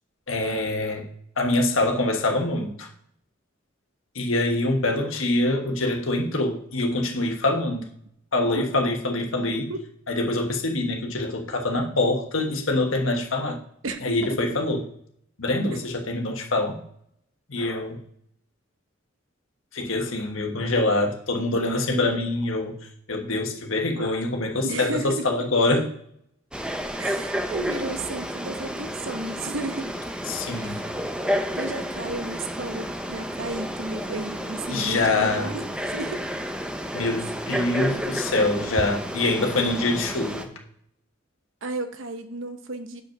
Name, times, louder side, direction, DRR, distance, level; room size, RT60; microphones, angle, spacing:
voice 1, 0.3-1.0 1.4-2.9 4.1-7.9 8.3-9.7 10.1-13.6 14.0-14.8 15.4-16.7 17.5-18.0 19.7-22.8 23.1-25.9 30.3-30.8 34.7-35.5 36.9-40.5, left 2 dB, 90° left, 2 dB, 1.4 m, -25 dB
voice 2, 13.8-14.5 21.9-22.2 24.6-25.4 27.0-29.9 30.6-30.9 31.5-36.3 41.6-43.0, right 2 dB, 75° right, 8 dB, 0.9 m, -33 dB
Frog, 26.5-40.5, equal, 5° right, 0.6 m, -31 dB
6.4 x 5.2 x 6.0 m, 0.70 s
head